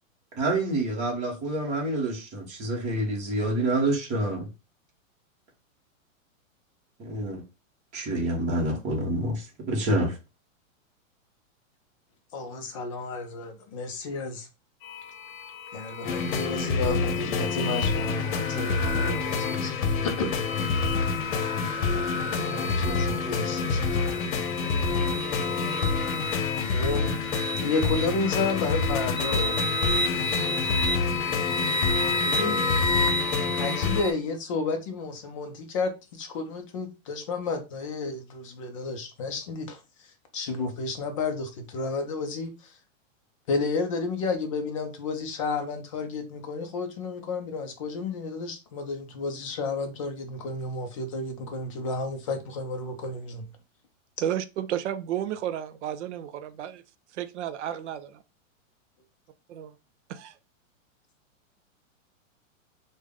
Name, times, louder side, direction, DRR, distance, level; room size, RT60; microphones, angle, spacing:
voice 1, 0.3-4.5 7.0-7.4 7.9-10.2, right 1 dB, 15° right, 0.9 m, -27 dB
voice 2, 12.3-14.5 15.7-19.7 20.0-20.5 22.4-24.3 26.7-27.2 27.6-29.7 32.2-32.6 33.5-40.1 40.3-42.8 43.5-53.5, left 3 dB, 25° left, 0.4 m, -31 dB
sound 1, 14.8-34.1, left 2 dB, 50° left, 0.9 m, -32 dB
sound 2, 16.0-34.0, left 4 dB, 80° left, 0.8 m, -28 dB
voice 3, 54.2-56.8 57.1-58.1 59.5-59.7 60.1-60.3, right 10 dB, 60° right, 0.5 m, -32 dB
3.4 x 2.2 x 3.5 m
supercardioid pair, 165°, 40 cm